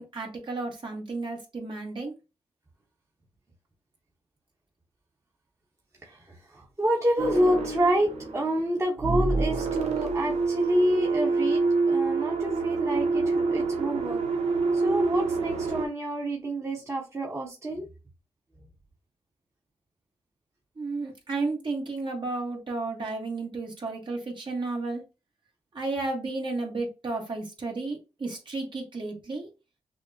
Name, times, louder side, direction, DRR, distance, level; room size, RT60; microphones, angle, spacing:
voice 1, 0.0-2.1 20.8-25.0 25.7-29.5, right 3 dB, 45° right, 1.5 m, -33 dB
voice 2, 6.0-14.2 14.7-17.9, equal, 25° right, 1.3 m, -28 dB
sound 1, 7.2-8.6 9.0-15.9, right 3 dB, 80° right, 0.9 m, -27 dB
6.2 x 2.1 x 2.8 m
cardioid pair, 75°, 11 cm